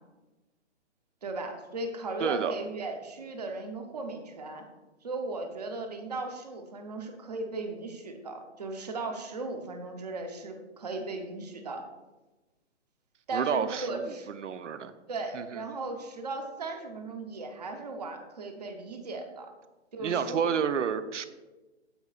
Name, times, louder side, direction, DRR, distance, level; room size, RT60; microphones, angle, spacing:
voice 1, 1.2-4.6 5.0-11.9 13.3-14.3 15.1-19.5 19.9-20.5, right 2 dB, 35° right, 5 dB, 0.8 m, -37 dB
voice 2, 2.2-2.5 13.3-14.1 14.4-14.9 15.3-15.5 20.0-21.3, right 7 dB, 90° right, 12 dB, 0.7 m, -29 dB
15.0 x 5.1 x 2.4 m, 1.1 s
hypercardioid pair, 175°, 36 cm